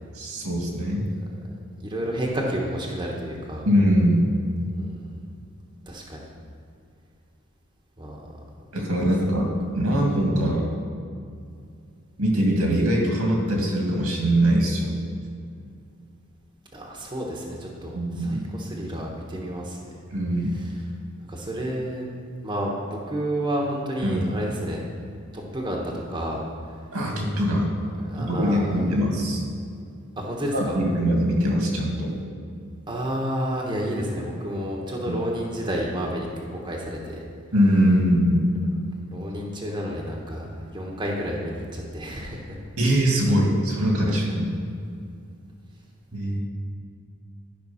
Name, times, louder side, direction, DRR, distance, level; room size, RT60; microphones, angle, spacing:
voice 1, 0.2-1.1 3.6-4.3 8.7-9.5 9.7-10.7 12.2-14.9 17.9-18.5 20.1-20.6 24.0-24.3 26.9-27.7 28.2-29.4 30.5-32.1 35.1-35.2 37.5-38.4 42.8-44.5 46.1-46.4, equal, 80° right, 0 dB, 2.0 m, -22 dB
voice 2, 1.8-3.6 4.8-5.1 5.9-6.3 8.0-8.2 16.7-19.8 20.5-20.7 21.3-22.1 22.4-24.8 25.3-26.4 28.1-28.9 30.2-30.8 32.9-36.3 36.6-37.2 39.1-42.6 44.2-44.3, equal, 20° right, -1 dB, 1.0 m, -30 dB
12.0 x 5.2 x 5.6 m, 2.3 s
head